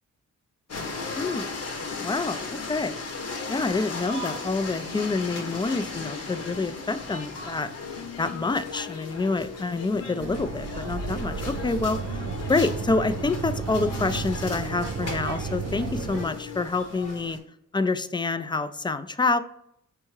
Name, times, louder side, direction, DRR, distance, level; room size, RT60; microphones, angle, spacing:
sound 1, 0.7-17.4, left 3 dB, 55° left, 0.8 m, -37 dB
voice 1, 1.1-1.5 2.0-2.4 2.7-3.0 3.5-7.7 8.2-12.2 12.5-17.4 17.7-19.4, left 3 dB, 15° left, 12 dB, 0.3 m, -27 dB
sound 2, 7.8-16.7, left 7 dB, 85° left, 0.5 m, -41 dB
sound 3, 10.2-16.3, right 6 dB, 55° right, 0.4 m, -33 dB
4.5 x 3.4 x 3.1 m, 0.73 s
supercardioid pair, 50°, 30 cm